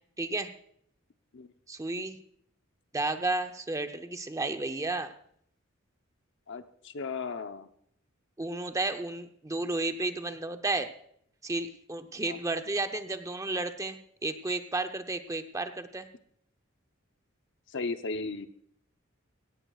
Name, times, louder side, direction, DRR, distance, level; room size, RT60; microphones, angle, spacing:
voice 1, 0.2-0.5 1.7-2.2 2.9-5.1 8.4-10.9 11.4-16.1, right 2 dB, 15° right, 7 dB, 0.7 m, -32 dB
voice 2, 6.5-7.7 12.3-12.4 17.7-18.5, left 4 dB, 60° left, 9 dB, 0.8 m, -35 dB
17.5 x 15.5 x 2.4 m, 0.68 s
head